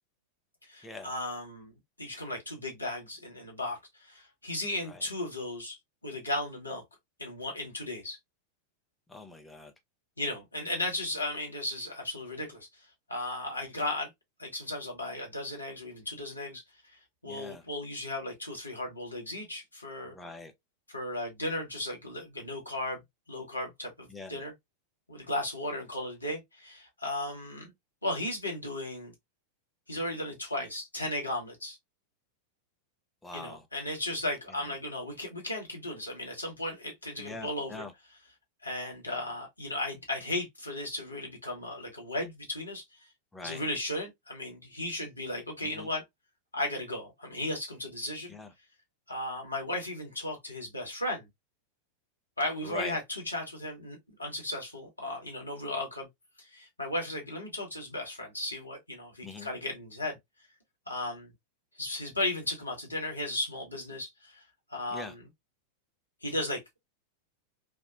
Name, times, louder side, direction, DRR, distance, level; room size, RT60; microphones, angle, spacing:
voice 1, 0.6-1.7 2.0-5.8 6.0-6.8 7.2-8.2 10.2-12.7 13.1-14.1 14.4-16.6 17.2-20.1 20.9-23.0 23.3-24.5 25.1-27.7 28.0-29.1 29.9-31.8 33.3-37.8 38.6-42.8 43.4-46.0 46.5-48.3 49.1-51.3 52.4-56.1 56.4-60.2 60.9-61.3 61.8-64.4 64.7-65.2 66.2-66.8, left 1 dB, 85° left, 0.9 m, -35 dB
voice 2, 9.1-9.7 17.3-17.6 20.0-20.5 24.1-24.4 33.2-33.6 37.2-37.9 43.3-43.6 45.6-45.9 48.3-48.5 52.6-53.0 59.2-59.5 64.9-65.1, left 3 dB, 10° left, 0.6 m, -43 dB
2.8 x 2.1 x 2.4 m
figure-of-eight pair, 90°, 0 cm